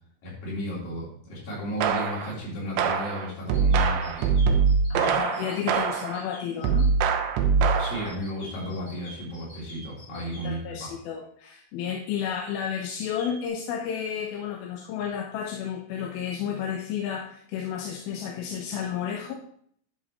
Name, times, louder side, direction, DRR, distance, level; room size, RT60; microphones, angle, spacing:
voice 1, 0.2-4.4 7.8-10.9, equal, 55° left, -6 dB, 5.2 m, -34 dB
sound 1, 1.8-2.3 2.8-6.2 6.6-8.1, right 5 dB, 85° right, 3.0 m, -23 dB
sound 2, 3.4-6.9 8.0-10.5 12.8-13.5, equal, 30° left, 4.5 m, -47 dB
voice 2, 4.9-7.0 10.1-19.3, left 8 dB, 75° left, 1 dB, 2.5 m, -32 dB
11.0 x 9.0 x 3.0 m, 0.64 s
omnidirectional pair, 4.7 m